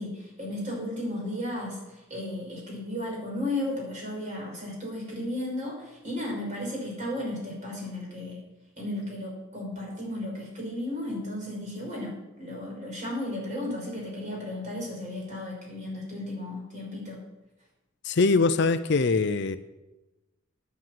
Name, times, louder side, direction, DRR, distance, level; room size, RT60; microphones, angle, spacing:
voice 1, 0.0-1.8 2.1-8.4 8.8-17.2, left 1 dB, 35° right, -2 dB, 5.9 m, -34 dB
voice 2, 18.0-19.6, left 4 dB, 55° left, 11 dB, 0.5 m, -22 dB
10.5 x 9.4 x 7.6 m, 1.0 s
head